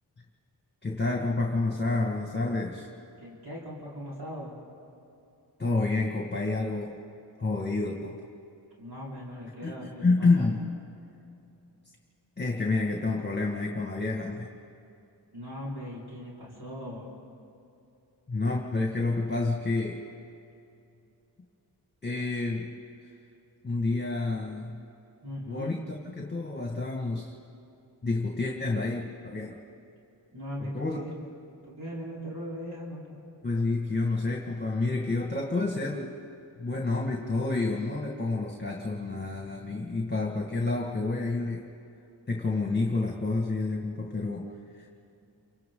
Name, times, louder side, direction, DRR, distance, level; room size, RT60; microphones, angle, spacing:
voice 1, 0.8-2.9 5.6-7.0 7.4-8.2 9.6-10.6 12.4-14.5 18.3-20.1 22.0-22.7 23.6-24.9 25.5-27.3 28.0-29.6 30.6-31.0 33.4-36.1 36.6-41.7 42.3-45.0, left 3 dB, 25° left, 0 dB, 1.8 m, -29 dB
voice 2, 3.2-4.6 8.8-10.4 15.3-17.1 25.2-25.7 30.3-31.3 31.6-33.2, equal, 60° right, -6 dB, 4.8 m, -39 dB
29.0 x 25.0 x 3.9 m, 2.7 s
wide cardioid pair, 75°, 43 cm